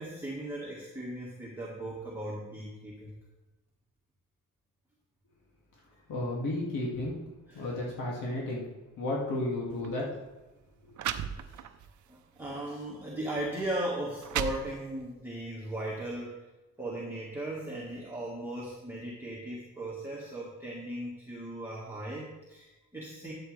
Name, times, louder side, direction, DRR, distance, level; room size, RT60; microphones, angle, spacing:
voice 1, 0.0-3.1 7.5-7.7 11.3-11.7 12.1-16.4 16.8-23.3, right 1 dB, 5° right, -5 dB, 1.6 m, -37 dB
voice 2, 6.1-7.1 7.5-8.6 9.0-10.1 10.8-10.9, left 1 dB, 80° left, -4 dB, 2.3 m, -33 dB
sound 1, 9.7-9.9 10.6-10.7 11.0-11.9 12.4-12.6 13.4-13.5 14.0-15.1, right 9 dB, 70° right, 0.6 m, -35 dB
12.5 x 7.9 x 3.3 m, 1.1 s
cardioid pair, 130°, 31 cm